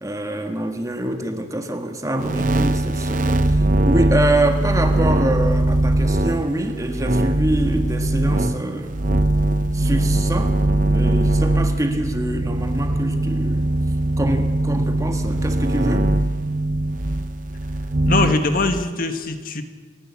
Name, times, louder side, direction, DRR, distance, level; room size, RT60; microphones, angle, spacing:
voice 1, 0.0-8.9 9.7-10.5 10.9-13.7 14.2-16.1, right 1 dB, 15° right, 5 dB, 1.6 m, -25 dB
sound 1, 2.2-18.8, right 1 dB, 45° right, 0.9 m, -21 dB
voice 2, 18.1-19.6, left 2 dB, 45° left, 7 dB, 1.7 m, -22 dB
29.0 x 11.0 x 8.7 m, 1.5 s
head